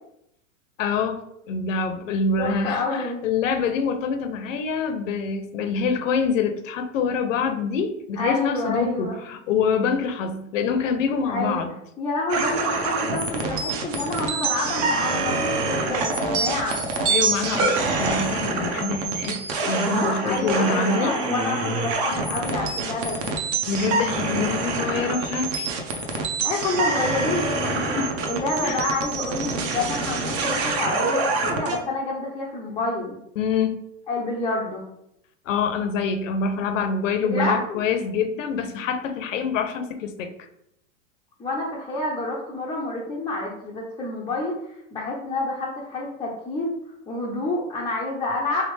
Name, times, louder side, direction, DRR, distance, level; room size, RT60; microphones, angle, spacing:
voice 1, 0.8-1.2 1.5-11.7 17.1-21.1 23.7-25.7 28.0-28.1 28.6-28.8 33.4-33.8 35.5-40.3, left 5 dB, 80° left, 9 dB, 0.6 m, -25 dB
voice 2, 2.4-3.2 8.2-9.2 11.3-11.6 12.0-16.8 20.2-23.3 26.4-27.9 28.3-33.2 34.1-34.8 37.2-37.8 41.4-44.6 44.9-46.8 47.1-48.6, left 2 dB, 10° left, -5 dB, 0.4 m, -28 dB
sound 1, 12.3-31.8, right 3 dB, 40° right, 0.7 m, -26 dB
3.4 x 3.3 x 3.2 m, 0.79 s
supercardioid pair, 125°, 38 cm